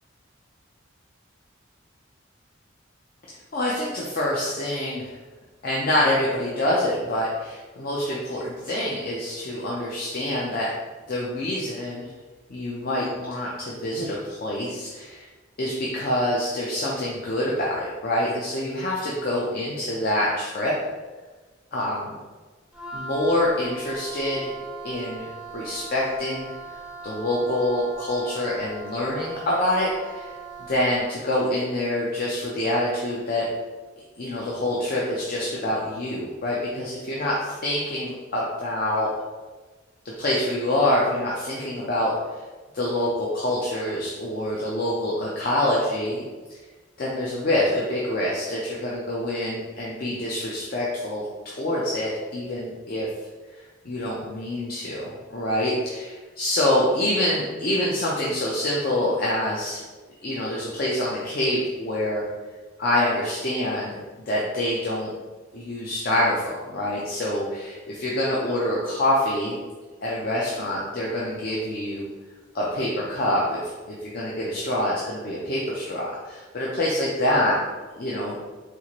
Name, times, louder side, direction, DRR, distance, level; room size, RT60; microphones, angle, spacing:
voice 1, 3.3-5.2 5.6-10.7 11.1-12.1 12.5-15.3 15.6-20.7 21.7-22.2 22.9-24.6 24.8-25.3 25.5-26.5 27.0-30.3 30.7-33.5 34.2-39.1 40.2-42.1 42.7-46.2 47.0-53.1 53.8-59.8 60.2-62.2 62.8-64.0 64.3-65.1 65.5-69.6 70.0-72.1 72.5-77.6 78.0-78.4, left 1 dB, 50° left, -5 dB, 0.5 m, -26 dB
Wind instrument woodwind instrument, 22.7-30.9, right 4 dB, 5° right, 0.6 m, -40 dB
4.3 x 2.5 x 2.9 m, 1.3 s
head